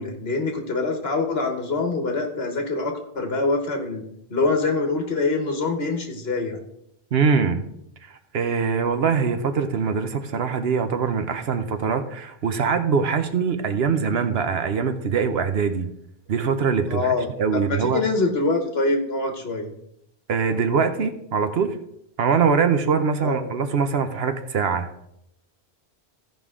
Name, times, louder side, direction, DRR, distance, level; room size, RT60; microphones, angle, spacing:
voice 1, 0.0-6.6 16.9-19.7 23.2-23.5, left 3 dB, 65° left, 3 dB, 1.5 m, -25 dB
voice 2, 7.1-7.6 8.3-15.9 16.3-18.0 20.3-21.8 22.2-24.9, right 6 dB, 65° right, 9 dB, 1.0 m, -23 dB
15.0 x 5.2 x 3.7 m, 0.78 s
omnidirectional pair, 1.1 m